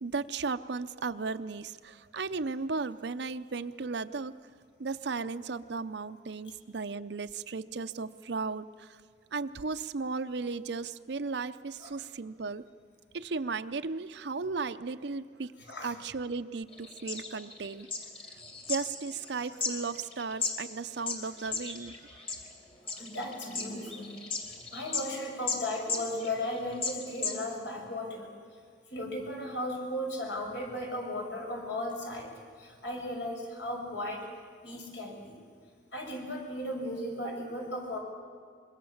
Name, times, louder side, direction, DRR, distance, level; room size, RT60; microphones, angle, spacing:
voice 1, 0.0-4.4 4.8-8.9 9.3-12.6 13.1-15.5 15.8-17.9 18.7-22.1, right 4 dB, 60° right, 10 dB, 0.6 m, -35 dB
sound 1, 16.7-20.5 21.0-22.5 22.9-25.1 25.4-25.6 25.9-27.4, left 4 dB, 30° left, 2.9 m, -35 dB
voice 2, 23.0-24.2 24.7-28.3 28.9-32.3 32.6-34.3 34.6-35.4 35.9-38.0, left 1 dB, 70° left, 0 dB, 6.1 m, -36 dB
25.0 x 22.0 x 7.2 m, 2.1 s
head